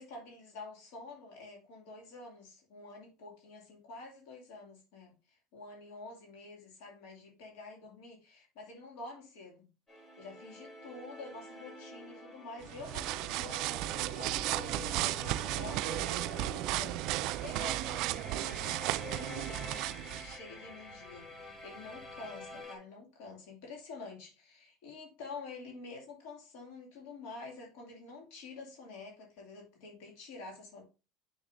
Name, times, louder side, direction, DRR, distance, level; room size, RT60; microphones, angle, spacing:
voice 1, 0.0-9.7 10.2-30.8, left 3 dB, 75° left, 0 dB, 2.4 m, -48 dB
sound 1, 9.9-22.8, left 2 dB, 25° left, 3.6 m, -48 dB
sound 2, 12.6-20.4, right 16 dB, 65° right, 0.3 m, -34 dB
sound 3, 13.1-22.6, left 2 dB, 55° left, 4.0 m, -61 dB
7.2 x 7.0 x 2.6 m, 0.30 s
supercardioid pair, 115°, 0 cm